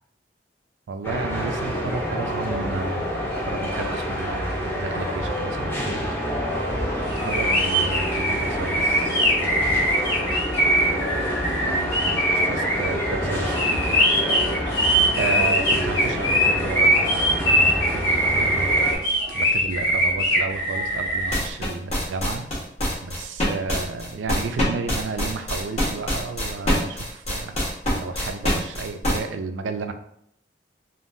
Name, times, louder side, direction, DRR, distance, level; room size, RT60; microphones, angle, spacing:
voice 1, 0.9-6.2 7.2-10.4 11.6-12.2 12.4-14.3 15.2-18.9 19.3-22.5 23.0-27.6 27.9-29.9, right 4 dB, 80° right, 7 dB, 0.3 m, -32 dB
sound 1, 1.0-19.0, equal, 10° left, 0.6 m, -27 dB
sound 2, 7.1-21.4, equal, 65° left, 1.3 m, -22 dB
sound 3, 21.3-29.2, left 1 dB, 35° left, 1.0 m, -24 dB
3.5 x 2.2 x 2.6 m, 0.72 s
head